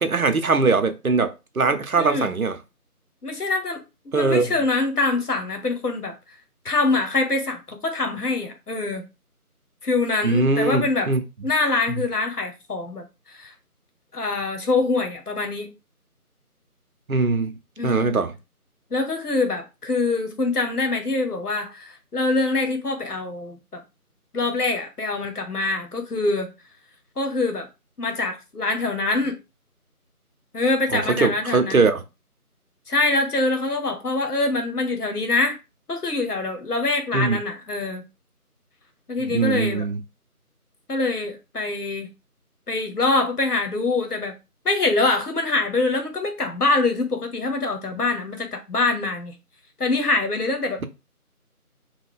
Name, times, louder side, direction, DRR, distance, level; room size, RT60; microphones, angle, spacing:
voice 1, 0.0-2.6 4.1-4.5 10.2-11.2 17.1-18.3 30.9-32.0 37.1-37.4 39.2-40.0, right 4 dB, 65° right, 0.6 m, -21 dB
voice 2, 2.0-2.3 3.2-6.1 6.6-9.1 9.8-11.1 11.4-13.5 14.1-15.7 17.8-18.2 18.9-23.8 24.3-26.5 27.2-27.7 28.0-29.4 30.5-31.8 32.9-35.6 35.9-38.1 39.1-39.8 40.9-42.1 42.7-44.4 44.6-49.4 49.8-50.9, left 3 dB, 80° left, 1.0 m, -24 dB
2.8 x 2.2 x 3.5 m
figure-of-eight pair, 175°, 46 cm